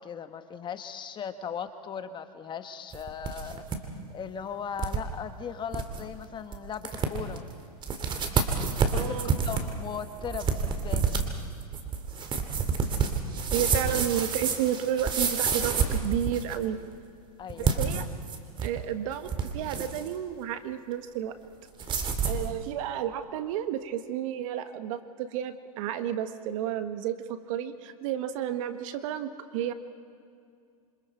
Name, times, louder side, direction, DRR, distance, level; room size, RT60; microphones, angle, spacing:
voice 1, 0.0-3.6 4.1-7.4 8.9-9.2 9.4-11.2 17.4-17.8, left 7 dB, 25° left, 9 dB, 1.3 m, -38 dB
sound 1, 2.9-3.8 4.1-4.2 4.8-5.0 5.4-5.5 5.7-6.0 6.5-6.6 6.8-7.4 7.8-16.6 17.5-18.8 19.1-20.1 21.8-22.5, right 5 dB, 25° right, 2.4 m, -28 dB
voice 2, 8.9-9.3 13.5-16.8 17.6-18.1 18.6-21.3 22.2-29.7, right 10 dB, 60° right, 9 dB, 1.6 m, -31 dB
27.0 x 26.0 x 4.6 m, 2.3 s
hypercardioid pair, 125°, 19 cm